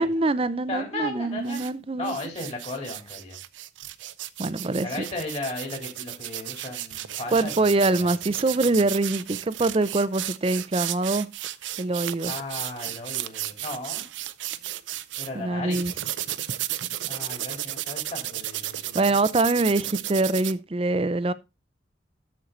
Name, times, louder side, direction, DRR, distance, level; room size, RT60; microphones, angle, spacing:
voice 1, 0.0-2.2 4.4-4.9 7.3-11.3 11.8-12.3 15.4-15.9 18.9-21.3, right 2 dB, 30° right, 0.5 m, -24 dB
voice 2, 0.7-3.4 4.8-7.7 8.0-8.1 8.7-8.8 12.3-14.0 15.2-15.9 17.1-19.2, left 2 dB, 35° left, 3.6 m, -35 dB
sound 1, 1.4-1.7 2.0-15.3 15.7-20.5, right 14 dB, 85° right, 0.5 m, -34 dB
13.0 x 4.6 x 3.9 m
head